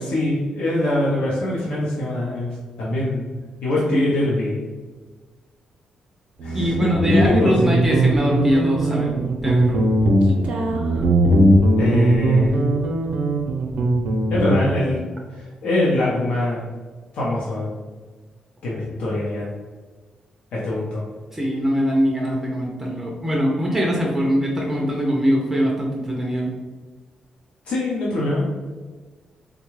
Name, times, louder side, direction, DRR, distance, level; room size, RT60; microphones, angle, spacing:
voice 1, 0.1-4.6 6.4-7.7 11.8-12.6 14.3-15.0 15.3-16.6 17.1-17.8 18.6-19.5 20.5-21.1 27.7-28.4, left 1 dB, 75° left, -6 dB, 0.7 m, -23 dB
Guitar, 6.4-14.9, right 1 dB, 80° right, 0.5 m, -19 dB
voice 2, 6.5-9.9 21.3-26.5, equal, 15° right, -2 dB, 0.4 m, -22 dB
3.5 x 2.2 x 3.1 m, 1.4 s
wide cardioid pair, 150°, 2 cm